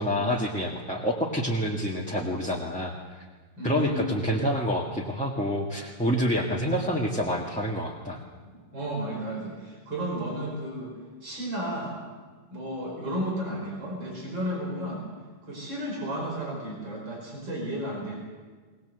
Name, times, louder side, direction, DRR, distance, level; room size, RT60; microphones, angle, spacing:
voice 1, 0.0-2.9 3.6-8.2, equal, 5° left, -3 dB, 1.6 m, -27 dB
voice 2, 3.6-4.3 6.4-6.8 8.5-10.9 11.2-11.9 12.5-15.0 15.5-18.2, equal, 80° right, -1 dB, 5.7 m, -33 dB
20.5 x 19.5 x 7.9 m, 1.4 s
omnidirectional pair, 2.0 m